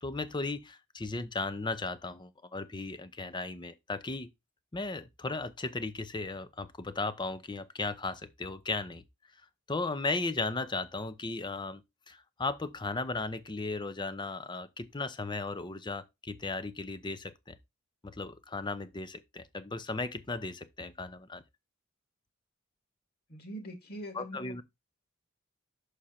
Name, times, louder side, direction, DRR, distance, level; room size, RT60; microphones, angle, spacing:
voice 1, 0.0-4.3 4.7-9.0 9.7-17.6 18.0-21.4 24.1-24.6, left 3 dB, 20° left, 0.6 m, -36 dB
voice 2, 23.3-24.6, equal, 50° left, 1.9 m, -43 dB
6.3 x 5.0 x 4.3 m
head